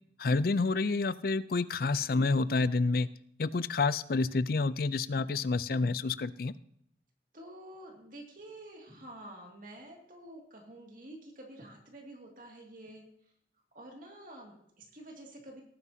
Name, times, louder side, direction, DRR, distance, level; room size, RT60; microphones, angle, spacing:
voice 1, 0.2-3.1 3.4-6.5, left 3 dB, 55° left, 16 dB, 0.5 m, -29 dB
voice 2, 7.3-13.0 13.7-15.6, right 1 dB, 50° right, 0 dB, 2.3 m, -49 dB
18.0 x 9.3 x 2.8 m, 0.71 s
head